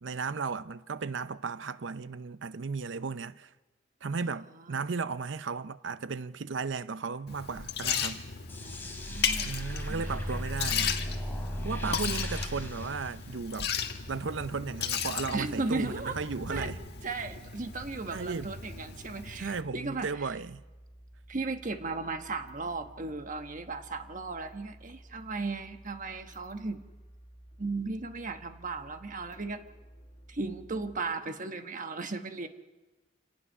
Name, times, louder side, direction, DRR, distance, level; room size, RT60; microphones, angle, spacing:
voice 1, 0.0-3.5 4.0-8.2 9.4-10.9 11.6-13.7 14.1-16.8 18.1-18.5 19.3-20.6, right 4 dB, 85° right, 0.6 m, -35 dB
voice 2, 4.5-4.9 8.6-10.3 15.3-16.2 16.5-16.7 17.0-20.3 21.3-26.8 27.6-29.6 30.3-32.5, right 3 dB, 45° right, 1.2 m, -36 dB
Liquid, 7.3-19.6, left 7 dB, 60° left, 1.6 m, -36 dB
sound 1, 8.5-13.8, equal, 10° left, 3.3 m, -36 dB
sound 2, 13.2-31.0, right 1 dB, 40° left, 1.6 m, -53 dB
27.0 x 18.5 x 5.5 m
head